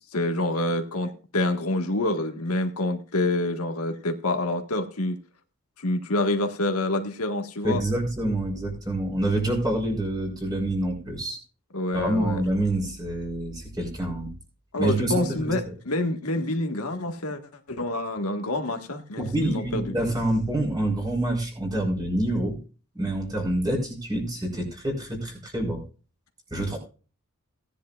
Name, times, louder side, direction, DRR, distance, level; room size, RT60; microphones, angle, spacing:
voice 1, 0.1-5.2 5.8-7.8 11.7-12.4 14.7-17.4 17.7-19.9, left 2 dB, 85° left, 5 dB, 1.7 m, -27 dB
voice 2, 7.6-11.4 11.9-14.3 14.8-15.6 19.2-22.6 22.9-25.8 26.5-26.8, right 1 dB, 20° right, 0 dB, 4.2 m, -27 dB
17.5 x 10.5 x 2.5 m, 0.36 s
head